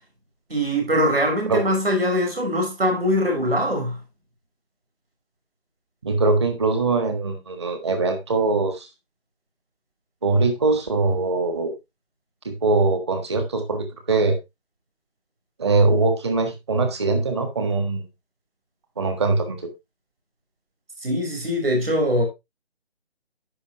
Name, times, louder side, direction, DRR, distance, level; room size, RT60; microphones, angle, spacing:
voice 1, 0.5-4.0 21.0-22.2, equal, 65° right, 5.7 m, -22 dB
voice 2, 6.0-8.9 10.2-11.7 12.4-14.4 15.6-18.1 19.0-19.6, right 3 dB, 25° right, 1.5 m, -22 dB
14.5 x 5.8 x 2.9 m
figure-of-eight pair, 160°, 32 cm